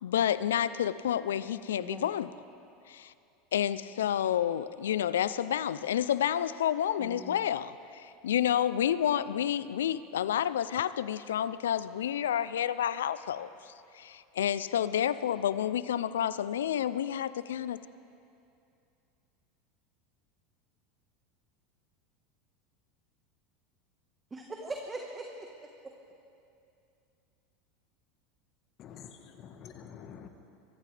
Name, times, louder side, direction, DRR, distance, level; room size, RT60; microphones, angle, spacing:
voice 1, 0.0-2.3 2.9-3.1 3.5-17.8, left 10 dB, 90° left, 16 dB, 0.4 m, -30 dB
voice 2, 1.8-2.2 7.0-7.4 24.3-25.7, right 2 dB, 20° right, 1 dB, 1.3 m, -41 dB
voice 3, 28.8-30.3, left 8 dB, 45° left, 7 dB, 1.3 m, -48 dB
23.0 x 14.5 x 3.3 m, 2.6 s
hypercardioid pair, 105°, 0 cm